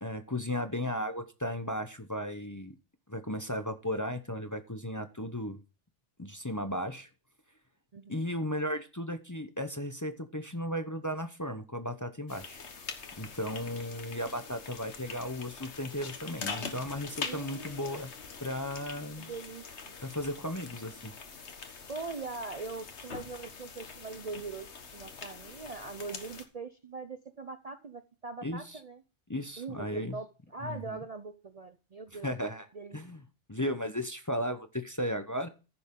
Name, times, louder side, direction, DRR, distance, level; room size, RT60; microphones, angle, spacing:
voice 1, 0.0-2.8 3.1-5.6 6.2-7.1 8.1-12.6 13.2-18.1 18.4-19.3 20.0-21.1 28.4-28.6 29.3-30.2 30.6-31.0 32.2-32.7 32.9-33.2 33.5-35.5, equal, 20° left, 8 dB, 0.7 m, -35 dB
sound 1, 12.3-26.4, left 5 dB, 70° left, 1.6 m, -44 dB
voice 2, 17.2-18.0 19.2-20.0 21.9-29.0 29.6-32.3 32.7-33.0, right 4 dB, 40° right, 9 dB, 0.6 m, -42 dB
14.5 x 7.0 x 3.7 m, 0.32 s
omnidirectional pair, 1.2 m